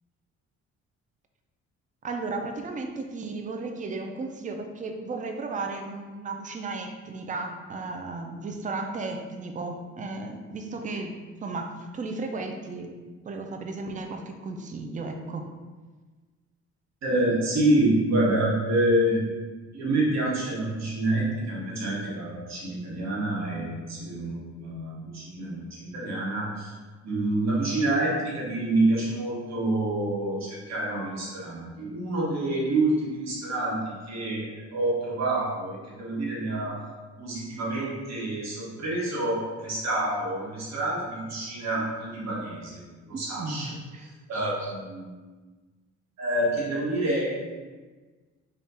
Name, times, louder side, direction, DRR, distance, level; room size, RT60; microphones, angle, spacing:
voice 1, 2.0-13.0 13.2-15.5 43.1-44.7, right 3 dB, 25° right, 4 dB, 0.4 m, -35 dB
voice 2, 17.0-19.2 19.7-26.7 27.0-36.8 37.2-43.7 44.3-45.1 46.2-47.3, right 1 dB, 60° right, -4 dB, 1.3 m, -27 dB
3.6 x 2.5 x 4.1 m, 1.3 s
cardioid pair, 90°, 30 cm